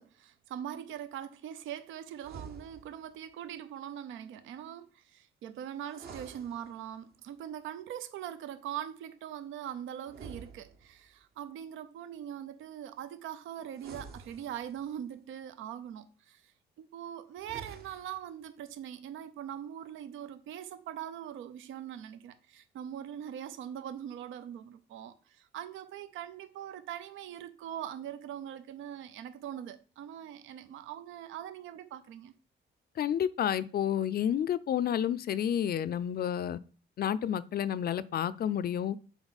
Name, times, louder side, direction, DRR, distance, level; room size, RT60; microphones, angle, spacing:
voice 1, 0.0-16.5 16.8-32.3, right 10 dB, 80° right, 0.6 m, -42 dB
sound 1, 2.2-3.1 5.8-7.2 10.0-11.2 13.7-15.0 17.3-18.3, right 5 dB, 50° right, 1.0 m, -49 dB
voice 2, 33.0-36.6 37.0-39.0, left 9 dB, 50° left, 0.4 m, -30 dB
7.1 x 4.5 x 4.1 m
cardioid pair, 90°, 20 cm